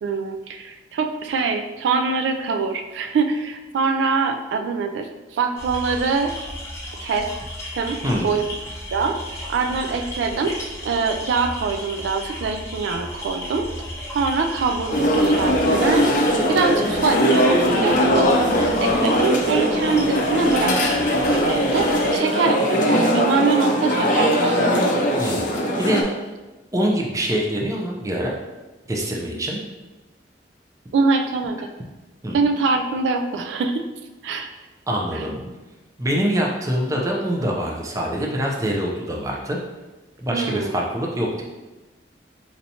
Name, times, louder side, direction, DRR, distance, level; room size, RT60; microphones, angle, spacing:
voice 1, 0.0-6.3 7.0-7.3 7.7-8.4 8.9-9.2 9.5-10.5 10.8-13.7 14.1-16.1 16.5-18.3 18.8-24.7 30.9-31.7 32.3-33.8 34.2-34.5 35.1-35.2 40.3-40.8, right 4 dB, 80° right, 6 dB, 0.3 m, -24 dB
sound 1, 5.6-22.2, left 1 dB, 15° left, 0.7 m, -34 dB
sound 2, 14.9-26.0, equal, 45° left, 0.5 m, -20 dB
voice 2, 26.7-28.3 28.9-29.6 32.2-32.4 34.9-35.3 36.0-39.6 40.2-41.4, equal, 20° right, -1 dB, 0.5 m, -24 dB
4.4 x 2.7 x 2.7 m, 1.1 s
head